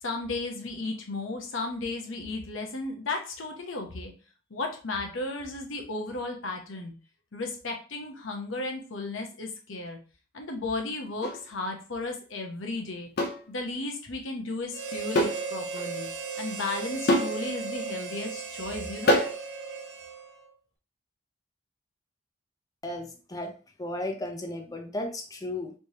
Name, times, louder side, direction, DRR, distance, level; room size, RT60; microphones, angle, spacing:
voice 1, 0.0-4.1 4.5-6.9 7.3-10.0 10.3-13.1 13.5-16.1 16.4-19.2, left 2 dB, 80° left, 3 dB, 0.9 m, -34 dB
sound 1, 11.2-11.4 13.2-13.4 15.1-15.4 15.8-15.9 17.1-17.4 19.1-19.4, left 1 dB, 55° left, 0.7 m, -24 dB
Harmonica, 14.7-20.5, right 5 dB, 55° right, 0.6 m, -36 dB
voice 2, 22.8-25.7, left 1 dB, 20° left, 3 dB, 0.6 m, -35 dB
3.4 x 3.1 x 2.8 m, 0.36 s
head